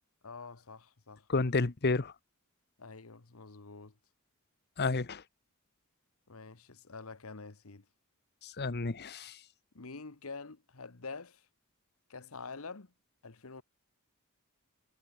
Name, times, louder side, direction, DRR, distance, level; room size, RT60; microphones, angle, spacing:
voice 1, 0.2-1.5 2.8-3.9 6.3-7.8 9.7-11.5 12.1-12.9 13.2-13.6, left 4 dB, 70° left, 1.3 m, -47 dB
voice 2, 1.3-2.1 4.8-5.2 8.4-9.4, left 3 dB, 50° left, 1.0 m, -31 dB
head